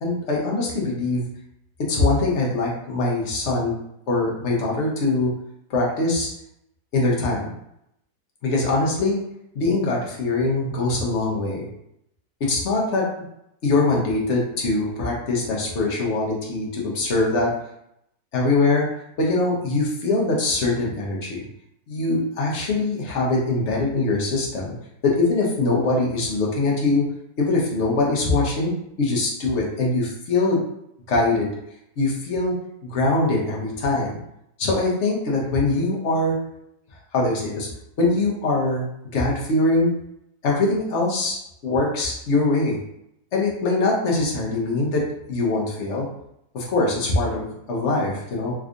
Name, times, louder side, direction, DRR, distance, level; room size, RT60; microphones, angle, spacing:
voice 1, 0.0-1.3 1.9-3.7 4.1-5.3 5.7-6.3 6.9-7.5 8.4-9.2 9.5-11.7 12.4-13.1 13.6-17.5 18.3-18.9 19.2-21.4 21.9-24.7 25.0-27.1 27.4-30.6 31.1-31.5 32.0-32.6 32.8-34.2 34.6-36.3 37.1-37.7 38.0-38.9 39.1-39.9 40.4-41.4 41.6-42.8 43.3-46.1 46.5-48.5, left 2 dB, 50° left, -3 dB, 1.1 m, -22 dB
3.5 x 3.1 x 2.5 m, 0.79 s
omnidirectional pair, 1.7 m